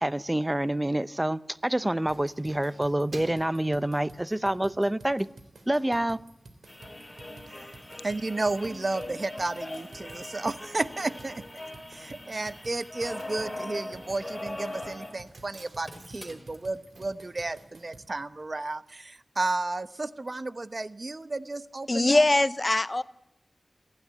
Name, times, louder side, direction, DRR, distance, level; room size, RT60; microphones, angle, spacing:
voice 1, 0.0-5.3 5.7-6.2, right 1 dB, 15° right, 0.7 m, -27 dB
Keys jangling, 1.5-4.6 5.1-5.3 5.6-6.3 6.6-6.7 6.9-7.0 7.2-18.1 18.3-18.4, right 2 dB, 65° right, 3.5 m, -54 dB
sound 1, 2.1-18.1, right 2 dB, 90° right, 3.6 m, -51 dB
sound 2, 6.7-15.2 15.5-15.6 15.8-16.6 17.5-17.6, left 1 dB, 15° left, 4.6 m, -41 dB
voice 2, 8.0-11.4 11.9-22.2, right 2 dB, 50° right, 0.9 m, -33 dB
voice 3, 21.9-23.0, left 2 dB, 35° left, 0.8 m, -22 dB
28.5 x 12.0 x 9.6 m
wide cardioid pair, 65°, 0 cm